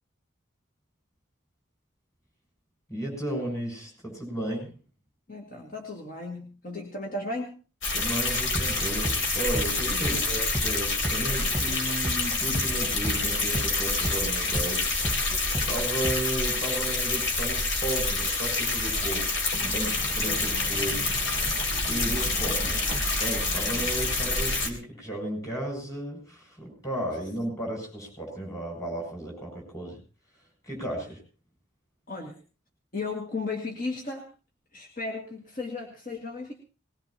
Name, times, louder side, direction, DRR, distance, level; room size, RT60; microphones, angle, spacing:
voice 1, 2.9-4.7 7.9-14.9 15.7-21.1 21.9-30.0 30.6-31.2, right 1 dB, 15° left, 1 dB, 7.2 m, -34 dB
voice 2, 5.3-7.6 9.9-10.3 11.4-11.6 20.1-20.4 31.0-31.1 32.1-32.4 32.9-34.3 34.7-36.5, left 3 dB, 40° left, 1 dB, 2.1 m, -35 dB
sound 1, 7.8-24.7, left 3 dB, 70° left, 3.9 m, -27 dB
sound 2, 8.5-16.6, right 1 dB, 5° right, 1.5 m, -35 dB
sound 3, 19.6-24.7, right 1 dB, 25° right, 1.0 m, -38 dB
21.0 x 20.0 x 2.9 m, 0.34 s
head